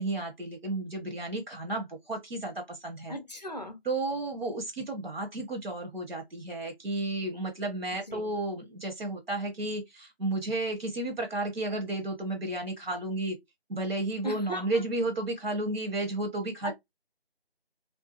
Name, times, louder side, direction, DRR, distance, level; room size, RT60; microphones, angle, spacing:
voice 1, 0.0-3.1 3.8-13.4 13.7-16.7, right 2 dB, 65° right, 0.9 m, -32 dB
voice 2, 3.1-3.8 7.9-8.3 14.2-14.8 16.6-16.7, equal, 40° left, 0.5 m, -38 dB
2.6 x 2.1 x 2.3 m
figure-of-eight pair, 175°, 31 cm